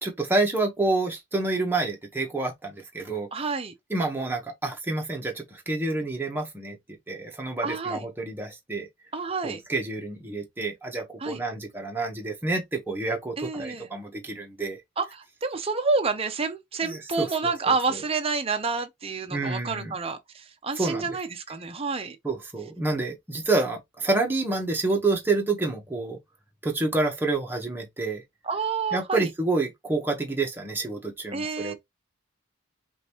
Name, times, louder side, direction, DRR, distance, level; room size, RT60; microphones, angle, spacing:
voice 1, 0.0-3.3 3.9-6.8 7.1-8.9 9.4-14.8 16.8-17.3 17.9-18.0 19.3-19.9 20.8-21.1 22.2-26.2 26.6-28.2 28.9-31.7, right 2 dB, 10° right, 1.1 m, -28 dB
voice 2, 3.3-3.7 7.6-8.0 9.1-9.6 11.2-11.4 13.4-13.9 15.0-22.2 28.4-29.3 31.3-31.7, right 4 dB, 30° right, 0.7 m, -29 dB
5.2 x 2.6 x 3.0 m
head